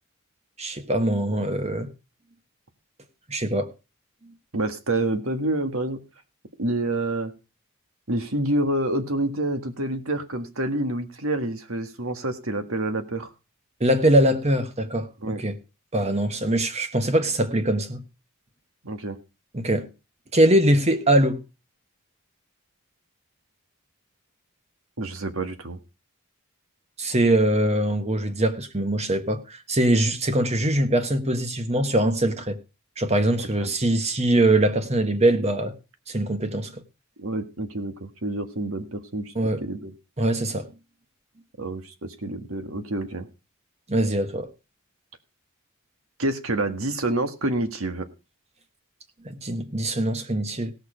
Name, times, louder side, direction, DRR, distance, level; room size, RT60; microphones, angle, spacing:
voice 1, 0.6-1.9 3.3-3.7 13.8-15.6 15.9-18.0 19.5-19.9 20.3-21.4 27.0-32.6 33.0-35.7 36.1-36.8 39.3-39.6 40.2-40.7 43.9-44.5 49.2-50.7, right 1 dB, 30° right, 1.3 m, -22 dB
voice 2, 4.5-6.0 6.6-7.3 8.1-13.3 15.2-15.4 18.8-19.2 25.0-25.8 33.6-33.7 37.2-39.3 39.6-39.9 41.6-43.3 46.2-48.1, right 1 dB, 70° right, 1.6 m, -28 dB
17.0 x 6.7 x 5.0 m
head